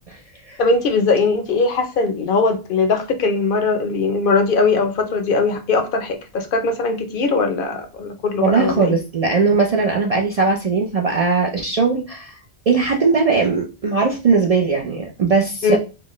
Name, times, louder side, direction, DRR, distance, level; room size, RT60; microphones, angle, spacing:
voice 1, 0.6-9.0 15.6-15.8, left 4 dB, 60° left, 0.7 m, -20 dB
voice 2, 8.4-12.4 12.7-15.8, right 4 dB, 55° right, 0.4 m, -19 dB
4.3 x 2.1 x 3.0 m
omnidirectional pair, 1.2 m